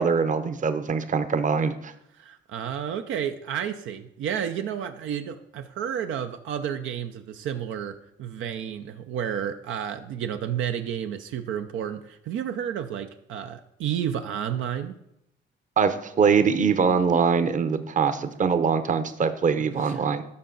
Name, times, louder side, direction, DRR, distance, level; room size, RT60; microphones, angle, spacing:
voice 1, 0.0-1.9 15.8-20.2, right 5 dB, 40° right, 11 dB, 0.8 m, -23 dB
voice 2, 2.2-14.9 17.7-17.8, right 9 dB, 80° right, 7 dB, 0.6 m, -31 dB
13.0 x 5.5 x 3.9 m, 0.81 s
cardioid pair, 90°, 20 cm